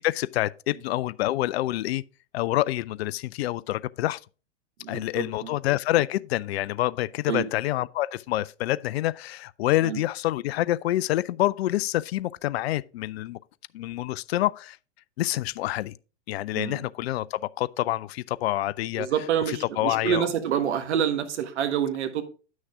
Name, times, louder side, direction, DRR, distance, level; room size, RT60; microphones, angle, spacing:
voice 1, 0.0-2.0 2.3-4.2 4.9-13.4 13.7-14.8 15.2-16.0 16.3-19.1 19.5-20.3, left 15 dB, 60° left, 0.5 m, -27 dB
voice 2, 4.8-5.5 7.3-7.4 9.8-10.0 16.5-16.8 19.0-22.2, right 9 dB, 65° right, 1.4 m, -27 dB
9.4 x 6.4 x 3.5 m
hypercardioid pair, 110°, 36 cm